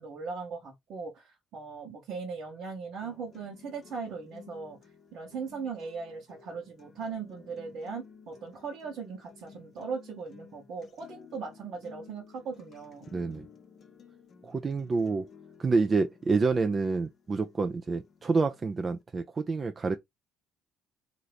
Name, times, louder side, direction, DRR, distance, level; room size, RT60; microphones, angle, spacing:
voice 1, 0.0-4.8 5.1-13.1, right 5 dB, 65° right, 1.0 m, -39 dB
sound 1, 3.0-19.0, left 6 dB, 50° left, 0.6 m, -55 dB
voice 2, 13.1-13.5 14.4-15.3 15.6-20.0, right 4 dB, 35° right, 0.3 m, -28 dB
2.8 x 2.6 x 3.3 m
supercardioid pair, 85°, 0 cm